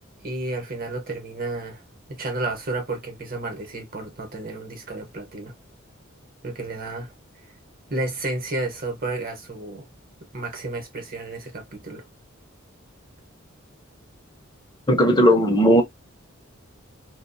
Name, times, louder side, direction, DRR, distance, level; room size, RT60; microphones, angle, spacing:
voice 1, 0.2-1.8 2.1-5.5 6.4-7.1 7.9-9.9 10.3-12.1, right 2 dB, 45° right, 1.0 m, -31 dB
voice 2, 14.9-15.8, equal, 20° left, 0.7 m, -16 dB
2.5 x 2.3 x 2.6 m
head